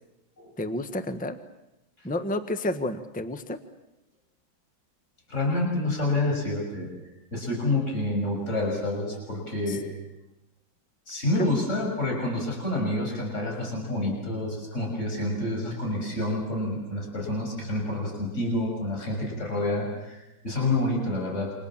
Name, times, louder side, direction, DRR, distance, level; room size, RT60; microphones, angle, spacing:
voice 1, 0.6-1.4 2.0-3.6 9.7-9.8 11.4-11.5, left 1 dB, 5° left, 9 dB, 1.1 m, -30 dB
voice 2, 5.3-6.9 7.3-9.8 11.1-21.5, left 2 dB, 35° left, -1 dB, 6.8 m, -28 dB
29.0 x 26.5 x 7.4 m, 0.95 s
omnidirectional pair, 2.1 m